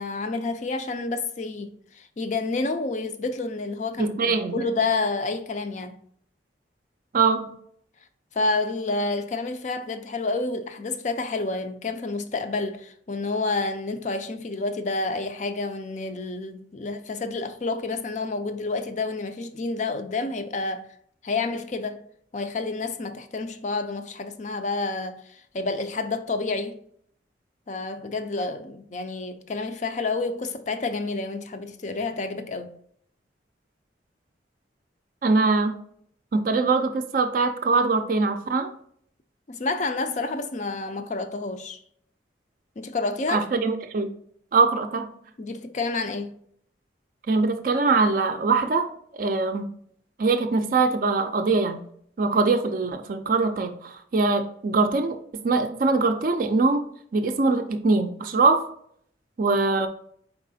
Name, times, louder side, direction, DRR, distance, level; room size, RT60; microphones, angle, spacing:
voice 1, 0.0-6.0 8.3-20.9 21.2-22.0 22.3-26.8 27.7-32.7 39.5-41.8 42.8-43.4 45.4-46.3, left 3 dB, 40° left, 0.4 m, -29 dB
voice 2, 4.0-4.6 7.1-7.5 35.2-35.8 36.3-38.7 43.3-44.1 44.5-45.1 47.3-49.7 50.2-51.8 52.2-55.2 55.4-56.8 57.1-58.6 59.4-59.9, right 3 dB, 45° right, 0.4 m, -22 dB
4.6 x 4.0 x 2.7 m
head